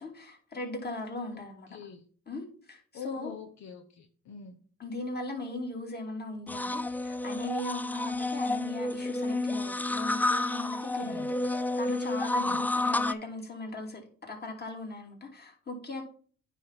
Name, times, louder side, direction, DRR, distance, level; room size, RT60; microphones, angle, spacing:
voice 1, 0.0-1.7 2.3-3.3 4.8-16.0, left 2 dB, 35° left, 1 dB, 2.8 m, -39 dB
voice 2, 1.3-2.0 2.9-4.6 11.0-11.3 12.4-12.6, left 7 dB, 65° left, 3 dB, 1.0 m, -45 dB
sound 1, 6.5-13.1, left 2 dB, 5° left, 0.3 m, -30 dB
9.2 x 3.6 x 5.8 m, 0.44 s
cardioid pair, 90°, 30 cm